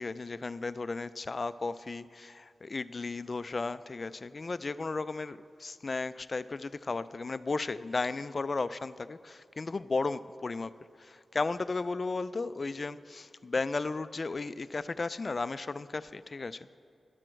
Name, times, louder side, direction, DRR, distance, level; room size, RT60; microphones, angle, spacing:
voice 1, 0.0-10.7 11.0-16.8, left 3 dB, 45° left, 15 dB, 0.3 m, -35 dB
11.5 x 7.6 x 6.3 m, 2.4 s
wide cardioid pair, 80°, 0 cm